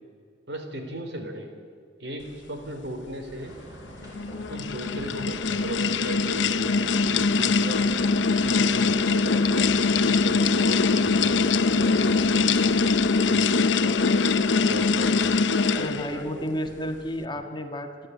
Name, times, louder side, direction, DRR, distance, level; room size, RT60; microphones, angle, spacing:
voice 1, 0.5-1.5 2.0-3.6 4.5-7.9 8.3-12.5 13.2-16.7 17.3-17.4, right 1 dB, 70° right, 5 dB, 3.7 m, -37 dB
sound 1, 3.4-12.9, equal, 20° right, 5.8 m, -45 dB
sound 2, 4.0-16.2, left 4 dB, 85° left, 0.7 m, -22 dB
voice 2, 15.8-18.1, equal, 25° left, 5 dB, 1.6 m, -31 dB
28.5 x 12.0 x 9.5 m, 2.1 s
head